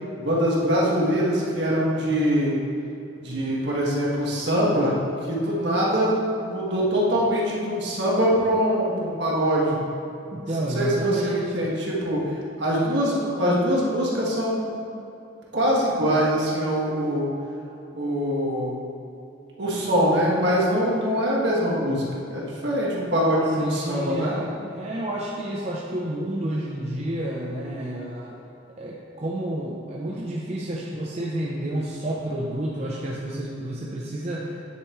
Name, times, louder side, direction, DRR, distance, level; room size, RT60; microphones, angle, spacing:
voice 1, 0.2-2.6 3.2-4.9 5.2-9.8 10.7-12.2 12.6-14.8 15.5-17.3 17.9-18.8 19.6-24.4, equal, 65° right, -5 dB, 1.9 m, -23 dB
voice 2, 10.3-11.5 23.6-28.4 28.8-34.5, right 1 dB, 35° right, -4 dB, 0.7 m, -30 dB
9.4 x 8.3 x 3.2 m, 2.8 s
head